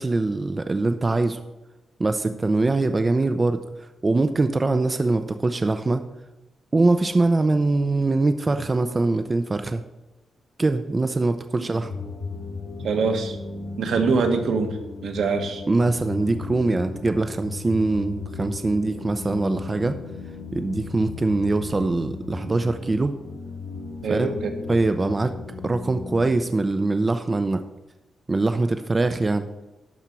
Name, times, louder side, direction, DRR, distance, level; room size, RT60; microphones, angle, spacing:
voice 1, 0.0-1.4 2.0-3.6 4.0-6.0 6.7-9.8 10.6-11.9 15.7-20.0 20.5-23.2 24.1-24.3 24.7-25.3 25.6-27.6 28.3-29.5, right 3 dB, 25° right, 9 dB, 0.6 m, -23 dB
sound 1, 11.8-26.4, left 4 dB, 85° left, 1.7 m, -36 dB
voice 2, 12.8-13.4 13.8-14.8 15.0-15.6 24.0-24.5, right 4 dB, 80° right, 5 dB, 1.5 m, -23 dB
12.0 x 4.4 x 8.2 m, 1.0 s
wide cardioid pair, 120°, 0 cm